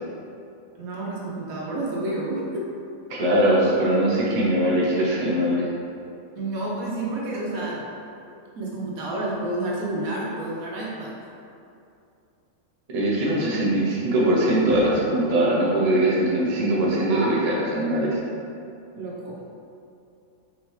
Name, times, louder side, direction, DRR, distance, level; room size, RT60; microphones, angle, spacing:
voice 1, 0.7-2.6 6.3-7.8 8.6-11.1 17.1-17.3 18.9-19.4, right 2 dB, 85° right, -4 dB, 1.3 m, -30 dB
voice 2, 3.1-5.7 12.9-18.2, right 1 dB, 35° right, -5 dB, 0.7 m, -21 dB
4.4 x 3.7 x 3.1 m, 2.6 s
omnidirectional pair, 1.4 m